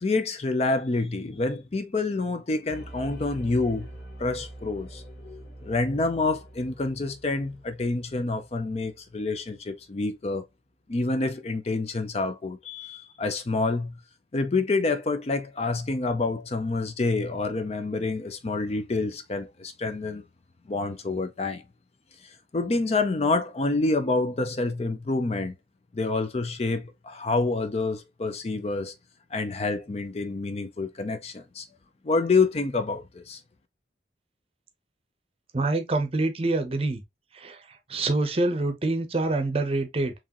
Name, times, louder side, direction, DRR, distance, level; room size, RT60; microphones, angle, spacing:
voice 1, 0.0-3.9 4.2-5.0 5.6-10.4 10.9-14.0 14.3-20.2 20.7-21.6 22.2-25.5 25.9-28.9 29.3-31.7 32.0-33.4, left 3 dB, 35° left, 0.4 m, -27 dB
sound 1, 2.7-9.5, right 1 dB, 60° left, 1.6 m, -45 dB
voice 2, 35.5-37.0 37.3-40.1, right 2 dB, 35° right, 0.7 m, -26 dB
4.8 x 3.0 x 2.9 m
head